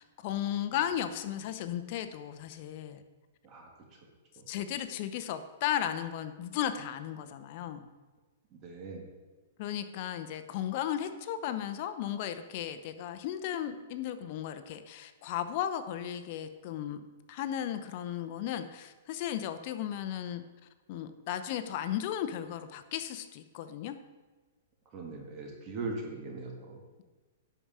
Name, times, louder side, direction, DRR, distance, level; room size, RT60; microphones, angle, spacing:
voice 1, 0.0-3.0 4.5-7.9 9.6-17.0 17.3-20.4 20.9-23.9, left 10 dB, 40° left, 10 dB, 0.7 m, -35 dB
voice 2, 8.6-9.1 24.9-26.8, right 3 dB, 25° right, 1 dB, 1.7 m, -40 dB
11.0 x 4.9 x 7.4 m, 1.3 s
hypercardioid pair, 160°, 0 cm